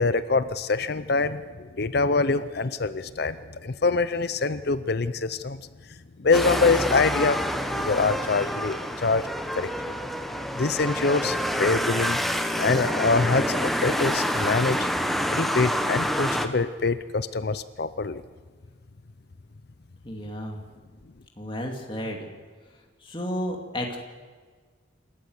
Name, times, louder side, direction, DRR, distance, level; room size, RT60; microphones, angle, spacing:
voice 1, 0.0-5.6 6.2-9.3 9.5-9.7 10.6-12.2 12.6-14.9 15.3-18.2, left 3 dB, 50° left, 14 dB, 0.6 m, -25 dB
sound 1, 6.3-16.5, equal, ahead, 1.1 m, -27 dB
voice 2, 20.0-20.6 21.4-22.3 23.0-24.0, equal, 25° left, 1 dB, 2.5 m, -32 dB
27.5 x 13.5 x 8.0 m, 1.5 s
head